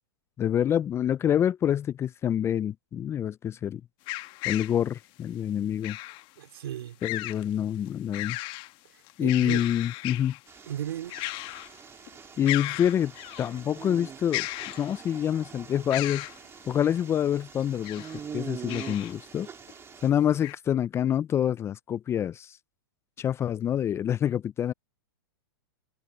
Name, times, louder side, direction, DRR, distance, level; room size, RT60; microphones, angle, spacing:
voice 1, 0.4-3.8 4.4-6.0 7.0-8.4 9.2-10.4 12.4-13.1 13.4-14.5 14.8-16.2 16.7-18.0 18.3-19.5 20.0-22.6 23.2-24.7, left 10 dB, 20° left, 0.5 m, -26 dB
sound 1, 4.1-4.8 5.8-6.2 7.0-7.4 7.9-8.7 9.1-10.4 11.1-11.8 12.1-12.2 12.5-13.5 14.3-15.2 15.9-16.4 17.6-18.2 18.7-19.1 19.7-19.8 20.4-20.5, left 20 dB, 40° left, 1.3 m, -35 dB
voice 2, 6.4-7.0 8.9-9.7 10.7-11.2, right 11 dB, 70° right, 3.5 m, -36 dB
sound 2, 10.5-20.1, right 7 dB, 20° right, 3.8 m, -44 dB
hypercardioid pair, 125°, 13 cm